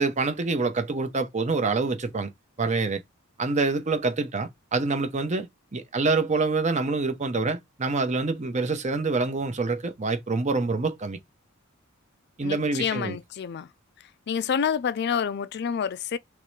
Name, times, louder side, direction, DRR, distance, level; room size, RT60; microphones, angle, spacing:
voice 1, 0.0-2.3 2.6-3.0 3.4-11.2 12.4-13.2, right 3 dB, 35° right, 0.8 m, -26 dB
voice 2, 12.4-13.7 14.3-16.2, left 7 dB, 55° left, 0.4 m, -28 dB
3.6 x 3.2 x 3.2 m
head